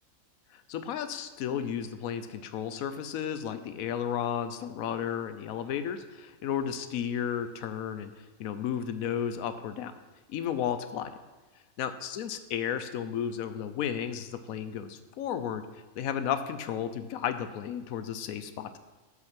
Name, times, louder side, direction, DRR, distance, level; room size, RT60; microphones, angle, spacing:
voice 1, 0.5-8.1 8.4-9.9 10.3-11.1 11.8-15.7 16.0-18.8, left 9 dB, 90° left, 11 dB, 1.1 m, -33 dB
7.9 x 5.9 x 5.8 m, 1.2 s
omnidirectional pair, 1.4 m